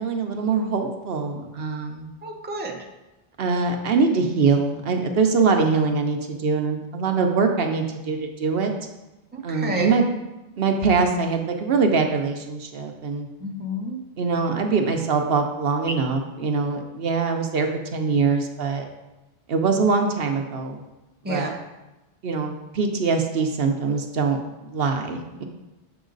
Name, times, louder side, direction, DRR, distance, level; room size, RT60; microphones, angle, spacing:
voice 1, 0.0-2.1 3.4-8.7 9.4-10.0 10.6-13.3 14.2-18.8 19.5-20.8 21.3-21.5 22.2-24.4 24.6-25.4, right 4 dB, 70° right, 4 dB, 1.0 m, -23 dB
voice 2, 2.2-2.8 9.3-9.9 13.4-14.0 21.2-21.5, equal, 10° right, -1 dB, 1.0 m, -30 dB
7.2 x 5.9 x 3.9 m, 1.0 s
omnidirectional pair, 1.0 m